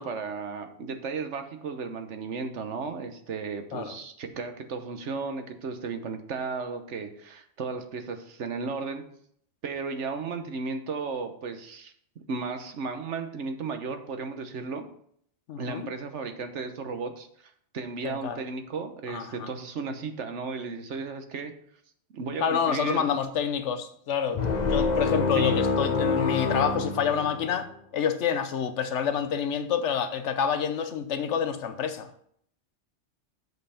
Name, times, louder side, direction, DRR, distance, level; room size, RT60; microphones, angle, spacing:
voice 1, 0.0-9.1 9.6-14.9 15.6-17.3 17.7-21.5 22.1-23.1 25.3-25.6, right 4 dB, 80° right, 1.3 m, -34 dB
voice 2, 15.5-15.9 18.0-18.4 19.1-19.5 22.4-32.1, left 7 dB, 75° left, 1.1 m, -28 dB
sound 1, 24.3-27.7, left 4 dB, 40° left, 0.9 m, -26 dB
7.7 x 5.4 x 5.7 m
omnidirectional pair, 1.2 m